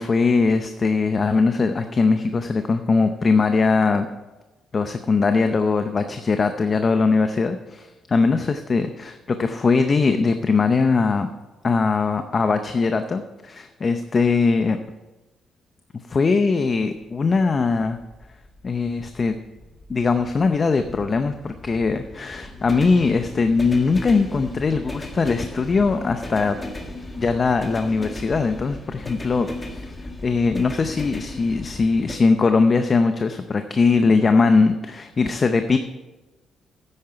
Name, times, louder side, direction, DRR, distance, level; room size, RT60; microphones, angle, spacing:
voice 1, 0.0-4.1 4.7-11.3 11.6-14.8 16.1-18.0 18.6-19.4 19.9-26.6 27.2-29.8 30.2-35.8, left 4 dB, 35° left, 8 dB, 0.6 m, -20 dB
sound 1, 17.0-32.2, left 2 dB, 20° left, 1.7 m, -37 dB
9.8 x 8.7 x 5.7 m, 1.1 s
cardioid pair, 90°, 0 cm